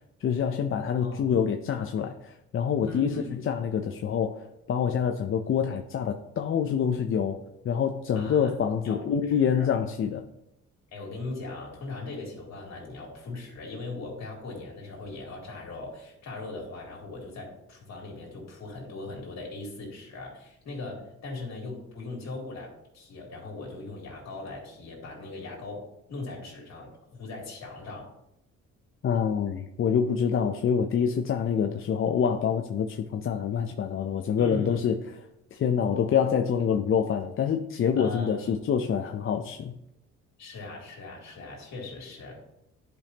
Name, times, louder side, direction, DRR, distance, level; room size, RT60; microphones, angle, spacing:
voice 1, 0.2-10.2 29.0-35.0 35.5-39.7, left 7 dB, 45° left, 4 dB, 0.5 m, -26 dB
voice 2, 2.8-3.4 8.1-8.5 8.8-9.7 10.9-28.1 34.4-34.8 38.0-38.5 40.4-42.4, left 2 dB, 60° left, -2 dB, 2.9 m, -39 dB
10.5 x 5.2 x 2.8 m, 0.85 s
cardioid pair, 90°, 30 cm